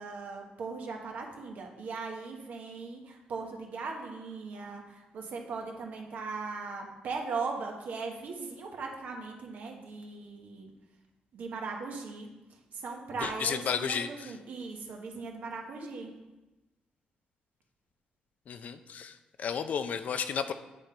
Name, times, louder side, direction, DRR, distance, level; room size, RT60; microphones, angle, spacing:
voice 1, 0.0-10.7 11.3-12.3 12.7-16.1, right 4 dB, 70° right, 1 dB, 1.2 m, -39 dB
voice 2, 13.2-14.1 18.5-19.1 19.4-20.5, left 7 dB, 65° left, 10 dB, 0.5 m, -32 dB
9.7 x 3.8 x 4.3 m, 1.0 s
cardioid pair, 85°, 3 cm